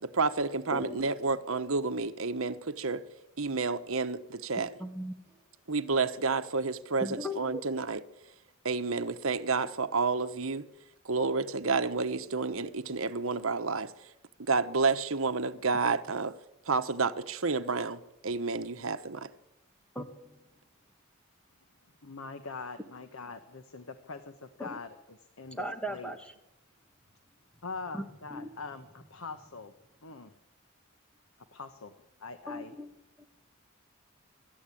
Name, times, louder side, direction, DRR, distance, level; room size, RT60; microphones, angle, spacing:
voice 1, 0.0-3.0 3.4-4.7 5.7-8.0 8.6-10.7 11.0-13.9 14.5-16.3 16.7-19.3, right 4 dB, 80° right, 1.1 m, -30 dB
voice 2, 0.7-1.1 4.8-5.2 7.0-7.6 19.9-20.5 24.6-24.8 25.5-26.3 27.9-28.0 28.3-28.5 32.5-33.2, equal, 5° left, 1.8 m, -38 dB
voice 3, 22.0-24.9 25.4-26.1 27.6-29.7 30.0-30.3 31.5-31.9 32.2-32.7, left 4 dB, 85° left, 1.2 m, -43 dB
24.0 x 12.5 x 8.6 m
head